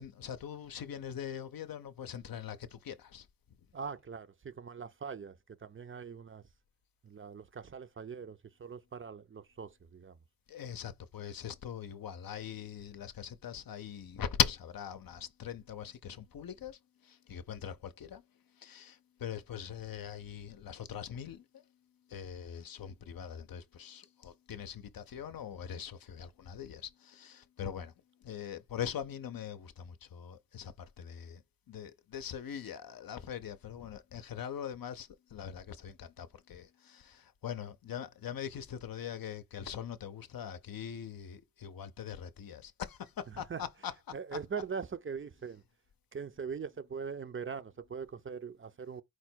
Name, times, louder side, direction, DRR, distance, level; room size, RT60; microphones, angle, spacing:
voice 1, 0.0-3.3 10.5-18.2 18.6-21.4 22.1-27.9 28.2-31.4 31.7-43.9, left 8 dB, 75° left, 0.6 m, -41 dB
voice 2, 3.7-6.4 7.0-10.2 43.3-43.6 44.1-45.6 46.1-49.0, right 6 dB, 35° right, 0.4 m, -41 dB
4.6 x 2.2 x 4.3 m
wide cardioid pair, 75°, 36 cm